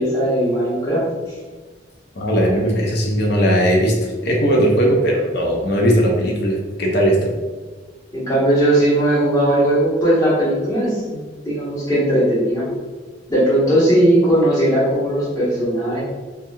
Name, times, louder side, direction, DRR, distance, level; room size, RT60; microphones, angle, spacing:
voice 1, 0.0-1.3 2.6-2.7 8.1-12.6 13.3-16.0, right 1 dB, 20° left, -9 dB, 1.1 m, -18 dB
voice 2, 2.2-3.9 4.2-7.3, equal, 65° left, -1 dB, 0.6 m, -18 dB
2.9 x 2.3 x 2.6 m, 1.3 s
head